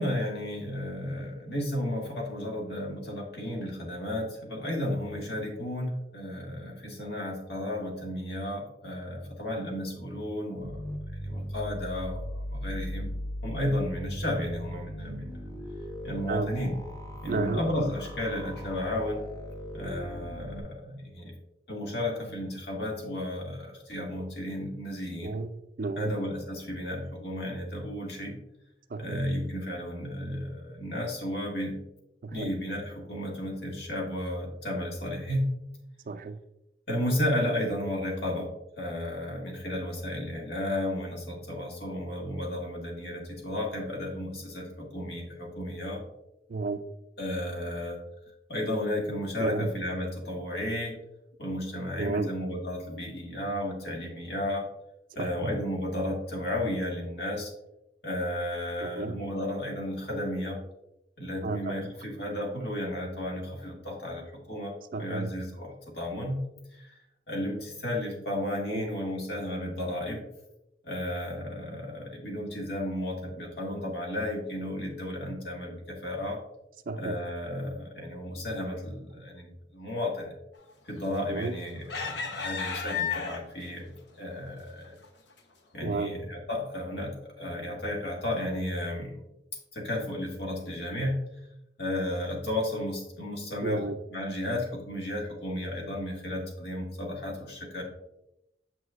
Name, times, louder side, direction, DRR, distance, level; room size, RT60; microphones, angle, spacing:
voice 1, 0.0-10.8 11.1-13.1 13.4-15.5 16.0-16.7 17.2-19.2 19.7-21.3 21.7-25.4 26.0-28.4 29.0-31.8 32.3-35.5 36.9-38.5 38.8-46.0 47.2-48.0 48.5-51.0 51.4-54.7 55.2-57.5 58.0-60.6 61.2-66.4 66.7-67.0 67.3-70.2 70.8-76.4 77.0-80.4 80.9-85.0 85.7-89.2 89.7-91.2 91.8-97.8, left 1 dB, 65° left, -1 dB, 1.8 m, -33 dB
sound 1, 10.6-20.6, equal, 20° left, 0.8 m, -38 dB
voice 2, 17.3-17.6 25.2-25.5 25.8-26.1 28.9-29.2 32.2-32.5 36.1-36.4 46.5-46.8 49.4-49.7 52.0-52.3 55.2-55.5 58.8-59.2 61.4-61.8 64.9-65.3 68.7-68.9 76.9-77.2 81.3-81.5 85.8-86.1 93.6-94.0, right 3 dB, 50° right, 11 dB, 0.4 m, -32 dB
sound 2, 81.1-81.4 81.9-83.7 84.3-84.4 84.8-85.1, left 6 dB, 80° left, 0.8 m, -33 dB
7.2 x 6.2 x 2.4 m, 0.87 s
head